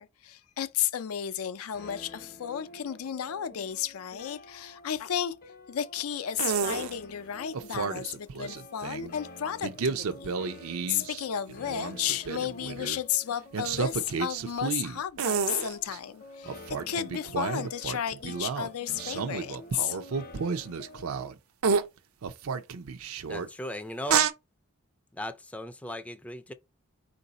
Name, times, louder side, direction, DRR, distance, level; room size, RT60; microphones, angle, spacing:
voice 1, 0.0-5.4 5.7-10.4 10.9-16.6 16.9-20.0, left 9 dB, 85° left, 0.4 m, -33 dB
sound 1, 1.7-21.3, left 2 dB, 45° left, 0.7 m, -49 dB
sound 2, 6.4-6.9 7.5-9.1 9.6-11.2 11.5-13.0 13.5-16.0 16.5-21.3 21.6-21.9 22.2-23.5 24.1-24.3, right 6 dB, 75° right, 0.5 m, -31 dB
voice 2, 23.3-24.3 25.1-26.5, left 1 dB, 5° left, 0.3 m, -37 dB
4.7 x 2.6 x 4.0 m
head